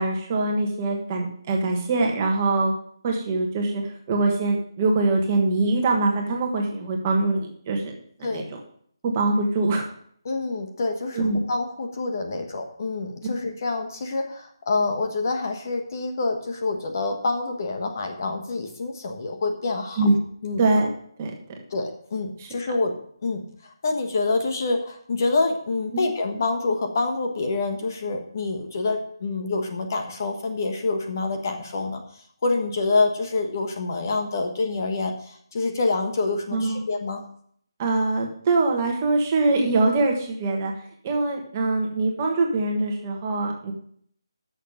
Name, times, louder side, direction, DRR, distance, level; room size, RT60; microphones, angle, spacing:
voice 1, 0.0-2.7 3.0-8.4 9.0-9.8 11.1-11.4 20.0-20.1 20.6-20.9 21.2-21.3 22.4-22.5 25.9-26.0 36.5-36.8 37.8-40.7 41.0-43.7, right 2 dB, 25° right, 1 dB, 1.5 m, -23 dB
voice 2, 10.2-20.1 20.4-20.6 21.7-32.0 32.4-37.2, left 3 dB, 40° left, 4 dB, 1.4 m, -27 dB
11.0 x 6.6 x 5.1 m, 0.62 s
hypercardioid pair, 170°, 2 cm